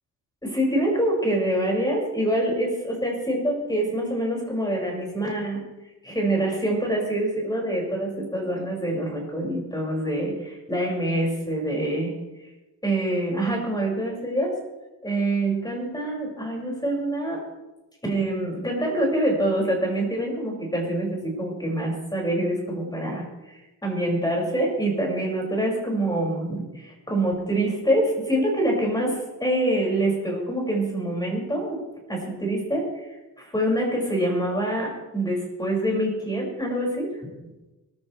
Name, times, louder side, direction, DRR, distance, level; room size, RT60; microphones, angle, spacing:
voice 1, 0.4-5.6 6.0-12.1 12.8-14.6 15.0-17.4 18.0-23.2 23.8-31.8 32.1-33.0 33.4-37.3, right 1 dB, 10° left, -2 dB, 6.5 m, -25 dB
25.0 x 14.5 x 3.5 m, 1.1 s
cardioid pair, 105°, 40 cm